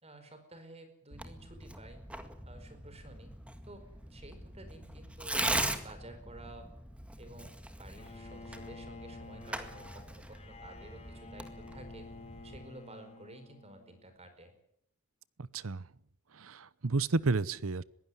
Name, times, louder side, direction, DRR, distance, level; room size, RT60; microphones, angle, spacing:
voice 1, 0.0-2.0 2.4-3.3 3.7-6.7 7.2-12.1 12.4-14.5, right 1 dB, 30° right, 8 dB, 4.7 m, -52 dB
Tearing, 1.1-12.7, right 1 dB, 5° right, 1.9 m, -40 dB
Bowed string instrument, 8.0-14.1, left 3 dB, 30° left, 2.7 m, -51 dB
voice 2, 15.4-15.8 16.4-17.8, right 3 dB, 75° right, 20 dB, 0.9 m, -31 dB
21.5 x 16.0 x 9.7 m, 0.75 s
head